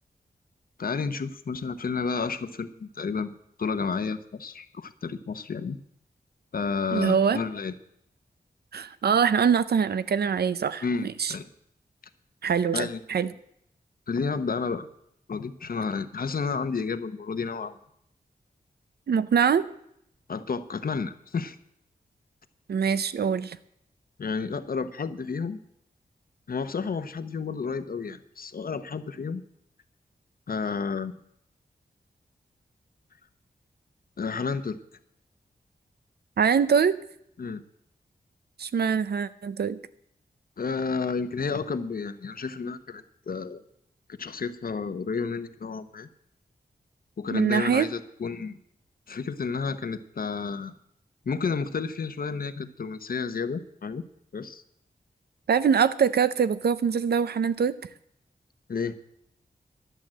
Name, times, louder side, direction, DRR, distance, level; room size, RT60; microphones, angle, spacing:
voice 1, 0.8-5.8 6.5-7.7 10.8-11.5 12.7-13.0 14.1-14.9 15.3-17.8 20.3-21.6 24.2-25.6 26.5-29.4 30.5-31.2 34.2-34.8 37.4-37.6 40.6-43.6 44.2-46.1 47.2-48.6 49.1-50.7 51.2-54.0 54.3-54.6 58.7-58.9, left 5 dB, 65° left, 11 dB, 1.0 m, -31 dB
voice 2, 6.9-7.4 8.7-11.3 12.4-13.3 19.1-19.7 22.7-23.6 36.4-37.0 38.6-39.8 47.3-47.9 55.5-57.7, right 7 dB, 90° right, 15 dB, 0.7 m, -23 dB
11.5 x 11.0 x 7.6 m, 0.74 s
wide cardioid pair, 90°, 16 cm